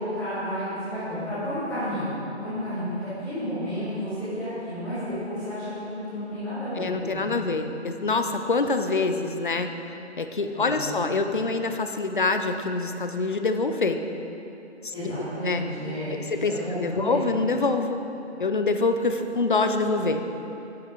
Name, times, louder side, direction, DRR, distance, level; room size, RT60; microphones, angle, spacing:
voice 1, 0.0-7.6 10.4-11.0 14.9-17.3, equal, 5° left, -16 dB, 2.3 m, -32 dB
voice 2, 6.8-9.7 10.2-14.0 14.8-15.6 16.3-16.5 16.8-18.0 18.4-20.2, left 3 dB, 45° left, 7 dB, 0.7 m, -25 dB
10.5 x 9.7 x 3.9 m, 2.9 s
figure-of-eight pair, 150°, 35 cm